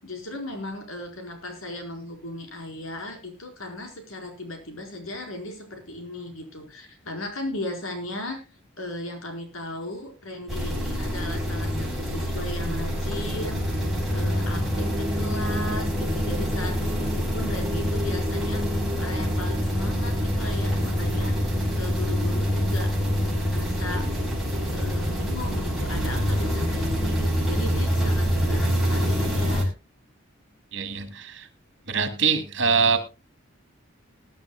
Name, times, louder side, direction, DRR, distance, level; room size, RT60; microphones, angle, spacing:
voice 1, 0.0-8.4 8.8-18.7 19.0-24.1 24.7-29.7, left 1 dB, 80° left, 3 dB, 4.6 m, -37 dB
sound 1, 10.5-29.6, equal, ahead, 5.3 m, -26 dB
voice 2, 30.7-31.4 31.9-33.1, right 5 dB, 55° right, 8 dB, 2.6 m, -24 dB
20.5 x 11.5 x 2.3 m, 0.28 s
head